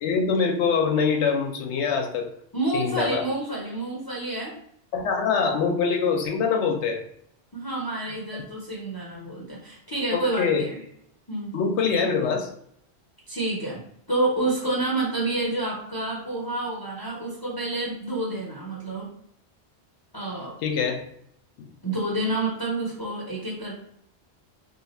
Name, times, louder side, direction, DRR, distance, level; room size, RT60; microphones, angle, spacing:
voice 1, 0.0-2.3 2.7-3.2 4.9-7.0 10.1-10.6 11.5-12.5 20.6-21.0 21.6-21.7, left 5 dB, 85° left, 3 dB, 0.9 m, -24 dB
voice 2, 2.5-4.5 7.5-10.8 11.3-11.5 13.3-13.8 14.1-19.1 20.1-20.5 21.8-23.7, right 2 dB, 25° left, -5 dB, 0.6 m, -28 dB
2.6 x 2.3 x 4.1 m, 0.69 s
omnidirectional pair, 1.1 m